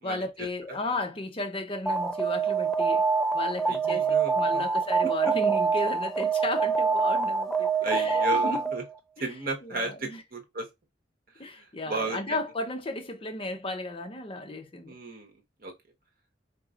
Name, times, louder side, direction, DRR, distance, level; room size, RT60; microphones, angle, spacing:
voice 1, 0.0-3.0 3.3-4.1 4.3-8.6 9.6-10.2 11.4-15.0, left 2 dB, 30° left, 0.8 m, -34 dB
Alarm, 1.9-8.9, right 5 dB, 5° left, 0.4 m, -25 dB
voice 2, 3.7-4.6 5.0-5.3 7.8-8.8 9.2-10.7 11.3-12.4 14.8-15.3 15.6-15.7, right 3 dB, 50° right, 1.1 m, -34 dB
4.2 x 4.2 x 2.5 m
head